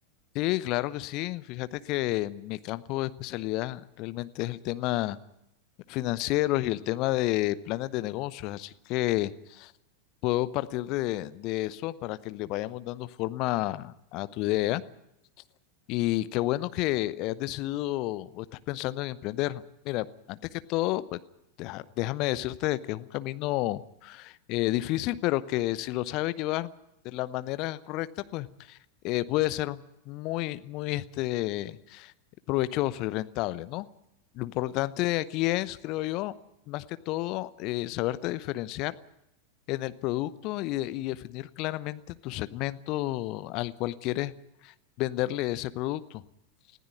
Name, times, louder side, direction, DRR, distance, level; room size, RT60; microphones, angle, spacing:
voice 1, 0.3-5.2 5.9-9.7 10.2-14.8 15.9-21.2 21.6-26.7 27.1-28.1 28.3-28.8 29.0-29.8 30.1-32.1 32.5-33.9 34.3-36.3 36.7-38.9 39.7-44.3 44.6-46.2, left 17 dB, 40° left, 15 dB, 0.8 m, -30 dB
20.0 x 15.0 x 9.5 m, 0.85 s
figure-of-eight pair, 90°, 0 cm